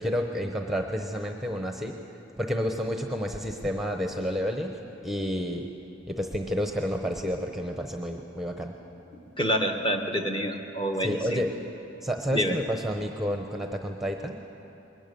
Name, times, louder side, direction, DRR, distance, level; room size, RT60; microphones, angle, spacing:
voice 1, 0.0-2.0 2.4-5.7 6.1-8.7 11.0-11.5 12.0-14.4, equal, ahead, 4 dB, 0.9 m, -30 dB
voice 2, 9.4-11.4 12.3-12.6, equal, 25° left, 3 dB, 1.3 m, -27 dB
21.0 x 18.5 x 6.9 m, 2.9 s
head